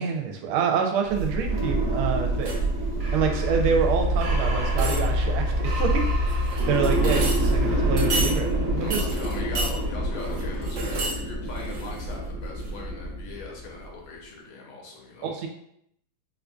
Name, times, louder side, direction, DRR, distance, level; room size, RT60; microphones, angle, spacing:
voice 1, 0.0-2.6 3.1-9.0 15.2-15.5, right 6 dB, 90° right, 3 dB, 1.4 m, -27 dB
sound 1, 1.0-10.7, left 1 dB, 50° left, 0.6 m, -44 dB
sound 2, 1.1-13.9, right 1 dB, 35° right, 1.0 m, -26 dB
sound 3, 2.4-2.8 4.2-4.3 4.7-5.3 6.3-7.5 8.0-8.4 8.9-9.7 10.2-11.2 11.5-12.2 12.6-12.7, right 2 dB, 60° right, 0.8 m, -31 dB
voice 2, 8.8-15.4, left 3 dB, 85° left, -1 dB, 1.7 m, -40 dB
4.7 x 2.5 x 2.2 m, 0.75 s
omnidirectional pair, 2.2 m